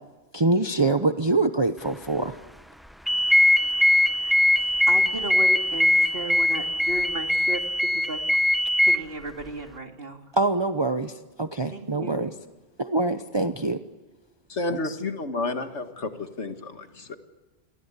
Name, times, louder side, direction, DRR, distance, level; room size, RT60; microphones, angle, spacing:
voice 1, 0.3-2.4 10.3-12.3 12.8-13.8 14.7-14.9, right 2 dB, 25° right, 8 dB, 1.0 m, -25 dB
sound 1, 3.1-9.0, left 1 dB, ahead, 0.6 m, -21 dB
voice 2, 4.9-8.3 8.8-10.2 11.7-12.2, right 2 dB, 55° right, 4 dB, 2.9 m, -35 dB
voice 3, 14.5-17.2, left 3 dB, 75° left, 7 dB, 2.2 m, -31 dB
29.5 x 22.5 x 8.4 m, 1.2 s
omnidirectional pair, 1.2 m